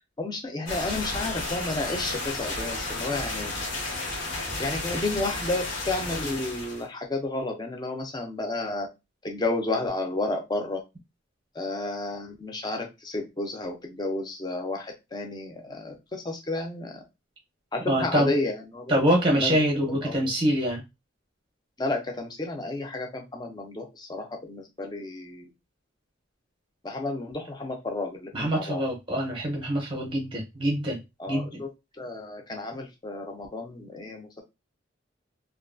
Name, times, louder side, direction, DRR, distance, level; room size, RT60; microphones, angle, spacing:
voice 1, 0.2-3.5 4.6-8.9 9.2-10.8 11.6-17.0 17.7-18.9 19.3-19.5 20.0-20.1 21.8-25.5 26.8-28.8 31.2-31.7 32.0-34.4, left 2 dB, 20° left, 3 dB, 0.5 m, -31 dB
sound 1, 0.7-6.8, left 2 dB, 75° left, 1.1 m, -32 dB
voice 2, 17.9-18.3 18.9-20.8 28.3-31.0 31.3-31.6, equal, 25° right, 0 dB, 0.7 m, -25 dB
2.6 x 2.3 x 2.5 m, 0.24 s
head